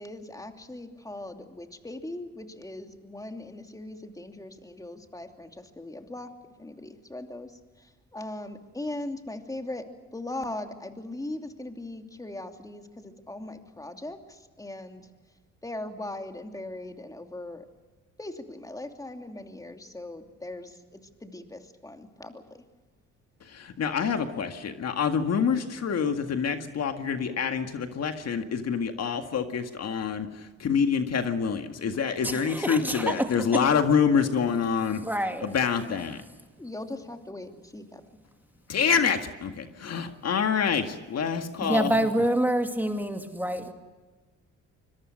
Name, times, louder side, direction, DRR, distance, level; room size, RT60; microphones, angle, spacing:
voice 1, 0.0-6.3 6.6-15.1 15.6-17.7 18.2-22.4 25.6-25.7 36.6-38.0, left 2 dB, 10° left, 5 dB, 2.8 m, -39 dB
voice 2, 23.5-30.3 30.6-35.0 35.4-36.2 38.7-41.9, left 6 dB, 55° left, 6 dB, 1.9 m, -26 dB
voice 3, 32.2-33.1 35.0-35.5 41.6-43.7, right 1 dB, 5° right, 5 dB, 2.4 m, -27 dB
25.0 x 22.5 x 6.4 m, 1.3 s
cardioid pair, 90°, 30 cm